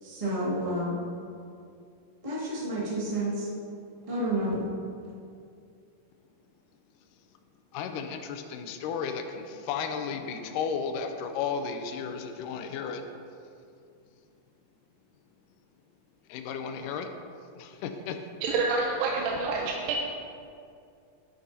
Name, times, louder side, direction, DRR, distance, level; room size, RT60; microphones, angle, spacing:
voice 1, 0.0-1.0 2.2-3.5 4.1-4.6, right 1 dB, 15° right, -8 dB, 1.1 m, -30 dB
voice 2, 7.7-13.0 16.3-17.1 17.5-18.2, left 6 dB, 80° left, 6 dB, 2.1 m, -34 dB
voice 3, 18.4-20.0, right 3 dB, 90° right, -1 dB, 2.3 m, -27 dB
10.0 x 9.3 x 2.8 m, 2.4 s
omnidirectional pair, 4.0 m